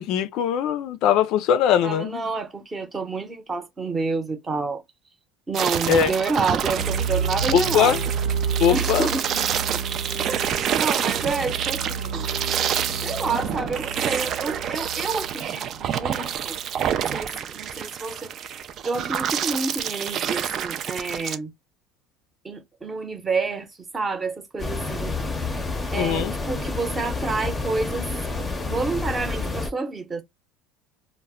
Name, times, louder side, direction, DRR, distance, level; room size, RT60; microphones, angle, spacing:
voice 1, 0.0-2.2 5.9-6.1 7.5-8.0 8.6-9.1 25.9-26.3, left 9 dB, 60° left, 0.4 m, -21 dB
voice 2, 1.8-4.8 5.5-8.1 8.7-9.3 9.7-9.8 10.3-12.3 13.0-16.6 16.9-18.6 18.8-21.5 22.4-23.7 23.9-25.2 25.9-28.1 28.4-30.2, right 4 dB, 20° right, 0.8 m, -29 dB
sound 1, 5.5-21.4, right 9 dB, 45° right, 0.3 m, -28 dB
sound 2, 6.6-16.6, right 6 dB, 70° right, 0.9 m, -30 dB
sound 3, 24.6-29.7, left 3 dB, 15° left, 0.6 m, -29 dB
2.1 x 2.1 x 3.5 m
supercardioid pair, 110°, 0 cm